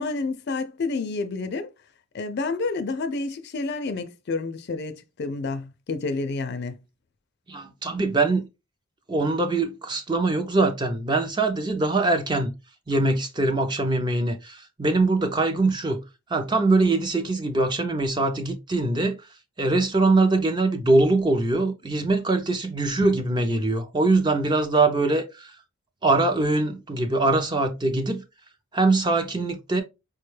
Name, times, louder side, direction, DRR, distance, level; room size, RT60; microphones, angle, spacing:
voice 1, 0.0-1.7 2.1-6.8, left 3 dB, 50° left, 0.4 m, -29 dB
voice 2, 7.5-8.5 9.1-12.5 12.9-16.0 16.3-19.3 19.6-25.6 26.0-28.2 28.7-29.8, right 2 dB, 20° right, 0.4 m, -23 dB
4.6 x 2.2 x 3.1 m
head